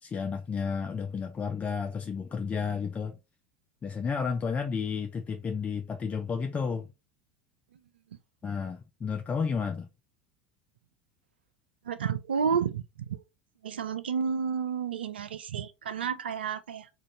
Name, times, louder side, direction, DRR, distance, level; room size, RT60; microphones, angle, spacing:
voice 1, 0.0-3.2 3.8-6.9 8.4-9.9, left 6 dB, 25° left, 0.4 m, -32 dB
voice 2, 11.8-13.2 13.6-16.9, right 6 dB, 85° right, 0.4 m, -31 dB
2.7 x 2.5 x 3.7 m
hypercardioid pair, 75°, 6 cm